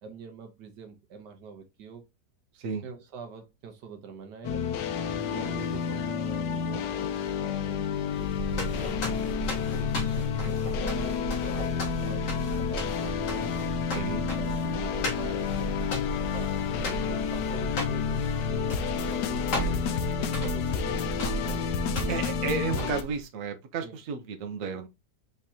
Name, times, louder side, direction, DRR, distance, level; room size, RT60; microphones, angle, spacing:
voice 1, 0.0-2.0 2.8-4.7 5.3-9.0 9.8-13.7 14.1-15.5 15.9-19.9 20.4-21.7 22.7-22.9 23.8-24.0, right 5 dB, 75° right, 1.6 m, -45 dB
sound 1, 4.4-23.0, left 7 dB, 70° left, 1.2 m, -30 dB
sound 2, 8.1-23.2, right 1 dB, 50° left, 1.8 m, -34 dB
voice 2, 13.9-14.3 20.2-20.4 22.1-24.9, right 5 dB, 55° right, 1.2 m, -33 dB
5.1 x 3.6 x 2.8 m
omnidirectional pair, 1.9 m